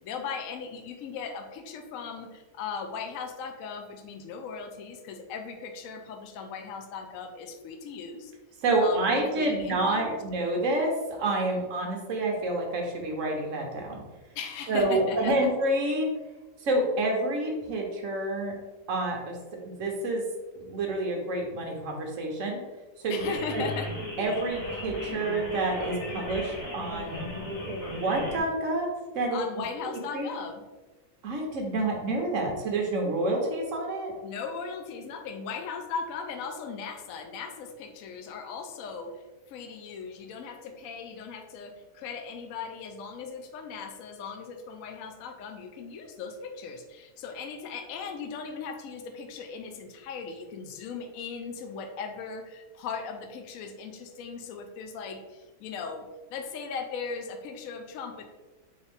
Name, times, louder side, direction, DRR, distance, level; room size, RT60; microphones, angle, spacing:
voice 1, 0.0-8.3 8.8-10.2 14.3-15.3 23.1-23.9 29.3-30.6 34.2-58.2, left 5 dB, 70° left, 5 dB, 0.9 m, -38 dB
voice 2, 8.6-14.0 14.7-16.1 16.6-18.5 18.9-19.4 19.8-20.2 20.6-22.6 23.0-23.6 24.2-27.3 27.9-29.4 29.9-30.3 31.2-34.1, right 2 dB, 60° right, 1 dB, 1.2 m, -28 dB
sound 1, 23.2-28.4, left 1 dB, 25° left, 1.1 m, -36 dB
4.3 x 3.3 x 3.4 m, 1.2 s
omnidirectional pair, 1.6 m